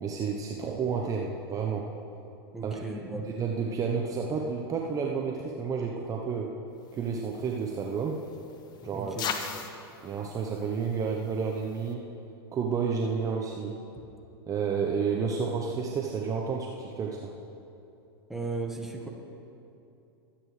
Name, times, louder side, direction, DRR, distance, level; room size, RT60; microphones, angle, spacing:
voice 1, 0.0-1.8 2.6-2.8 3.4-6.5 6.9-8.2 8.8-9.1 10.0-12.1 12.5-13.8 14.5-17.3, right 5 dB, 25° right, 0 dB, 1.0 m, -30 dB
voice 2, 2.5-3.3 8.9-9.3 18.3-19.1, right 3 dB, ahead, 0 dB, 1.6 m, -36 dB
sound 1, 6.8-11.9, left 6 dB, 35° left, 1.0 m, -41 dB
22.5 x 8.9 x 3.3 m, 2.8 s
hypercardioid pair, 100°, 13 cm